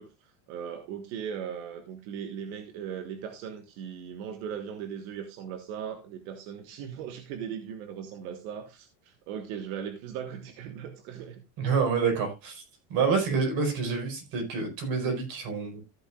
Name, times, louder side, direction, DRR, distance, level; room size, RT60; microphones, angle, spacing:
voice 1, 0.0-11.4, right 8 dB, 85° right, 6 dB, 1.5 m, -38 dB
voice 2, 11.6-12.6 12.9-15.8, right 5 dB, 55° right, 4 dB, 4.9 m, -27 dB
14.5 x 8.7 x 2.4 m, 0.24 s
cardioid pair, 165°, 42 cm